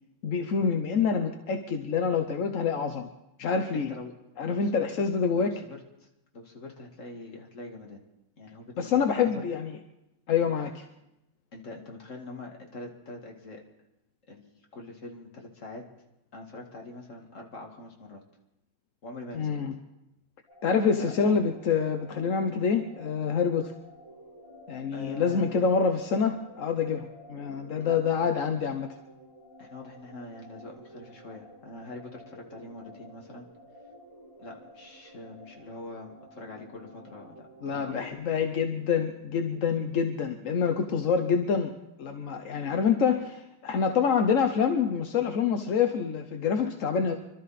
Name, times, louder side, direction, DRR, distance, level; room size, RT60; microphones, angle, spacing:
voice 1, 0.2-3.1 3.4-3.9 4.4-5.5 8.8-9.7 10.3-10.8 19.3-19.7 20.6-23.7 24.7-28.9 37.6-41.7 42.0-47.1, left 6 dB, 55° left, 6 dB, 0.9 m, -26 dB
voice 2, 3.7-4.1 4.4-4.9 5.3-6.1 6.3-8.0 8.4-9.4 11.5-13.6 14.3-15.8 16.3-18.2 19.0-19.6 21.0-21.4 24.9-25.5 27.8-28.0 29.6-33.5 34.4-38.2, left 2 dB, 40° left, 1 dB, 2.3 m, -43 dB
sound 1, 20.5-38.1, equal, 15° right, 6.5 m, -52 dB
25.5 x 13.0 x 4.2 m, 0.89 s
omnidirectional pair, 2.2 m